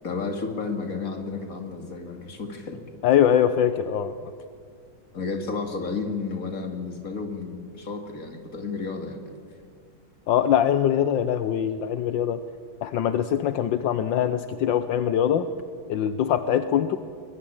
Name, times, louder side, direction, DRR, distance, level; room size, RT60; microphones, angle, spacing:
voice 1, 0.0-2.8 5.1-9.2, left 4 dB, 45° left, 5 dB, 2.8 m, -32 dB
voice 2, 3.0-4.3 10.3-12.4 12.8-15.5 15.9-17.0, left 9 dB, 75° left, 11 dB, 1.5 m, -23 dB
23.5 x 22.0 x 8.9 m, 2.2 s
omnidirectional pair, 2.1 m